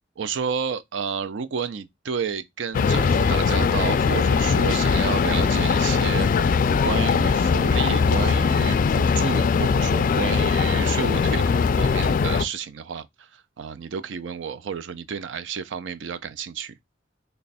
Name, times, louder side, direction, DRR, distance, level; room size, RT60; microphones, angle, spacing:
voice 1, 0.2-6.6 6.8-16.7, right 6 dB, 70° right, 0.4 m, -31 dB
sound 1, 2.7-12.4, left 5 dB, 45° left, 0.3 m, -21 dB
3.2 x 2.3 x 4.0 m
head